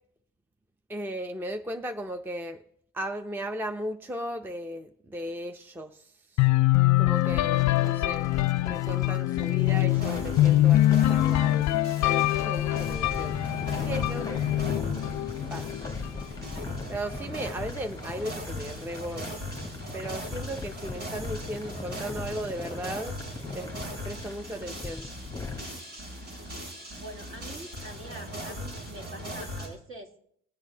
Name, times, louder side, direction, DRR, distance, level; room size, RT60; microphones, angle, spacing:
voice 1, 0.9-2.6 2.9-6.4 7.0-8.3 8.6-13.4 13.7-14.4 15.5-16.0 16.9-19.4 19.9-23.2 23.5-25.1, right 1 dB, 5° right, 7 dB, 0.5 m, -36 dB
sound 1, 6.4-16.2, left 15 dB, 65° left, 0.4 m, -24 dB
sound 2, 7.1-25.6, left 4 dB, 10° left, 1.0 m, -40 dB
sound 3, 9.9-29.7, equal, 90° right, 5.9 m, -39 dB
voice 2, 26.9-30.1, right 1 dB, 45° right, 1 dB, 2.0 m, -45 dB
21.0 x 8.4 x 2.7 m, 0.69 s
cardioid pair, 90°, 30 cm